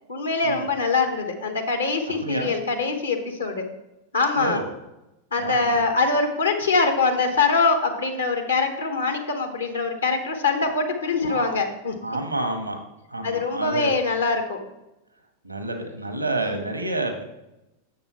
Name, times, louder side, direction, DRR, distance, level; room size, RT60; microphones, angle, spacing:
voice 1, 0.1-3.7 4.1-4.6 5.3-12.0 13.2-14.6 16.4-16.6, left 4 dB, 75° left, 5 dB, 1.1 m, -23 dB
voice 2, 2.2-2.5 4.4-4.6 5.4-5.8 10.6-10.7 11.3-11.5 12.0-12.8 13.1-13.9 15.4-17.2, right 2 dB, 85° right, 5 dB, 1.0 m, -29 dB
7.1 x 6.7 x 4.2 m, 0.93 s
figure-of-eight pair, 90°, 0 cm